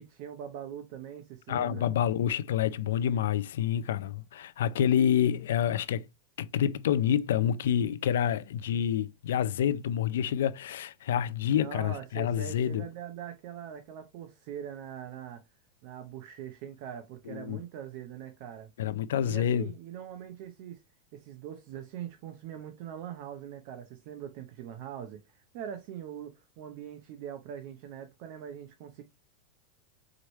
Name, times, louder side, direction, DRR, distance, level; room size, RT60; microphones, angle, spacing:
voice 1, 0.0-1.9 11.6-15.4 15.8-18.7 19.2-20.8 21.1-29.0, right 9 dB, 60° right, 0.8 m, -42 dB
voice 2, 1.5-6.0 6.4-12.9 17.3-17.6 18.8-19.6, left 9 dB, 80° left, 0.4 m, -28 dB
4.9 x 3.2 x 3.1 m
supercardioid pair, 120°, 0 cm